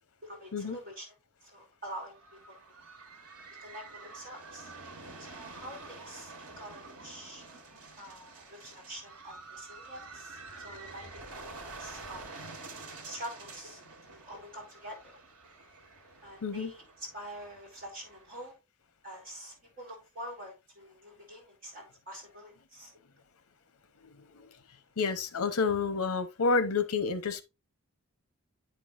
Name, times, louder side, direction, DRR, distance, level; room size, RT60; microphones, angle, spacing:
voice 1, 0.2-1.1 1.4-2.6 3.6-4.7 5.2-7.4 8.0-12.3 13.0-13.8 14.1-15.2 16.2-18.5 19.0-22.9, equal, 40° right, 3.6 m, -46 dB
sound 1, 1.9-18.5, right 3 dB, 90° right, 1.4 m, -48 dB
voice 2, 25.0-27.4, left 4 dB, 80° left, 0.8 m, -29 dB
9.1 x 5.3 x 2.5 m
head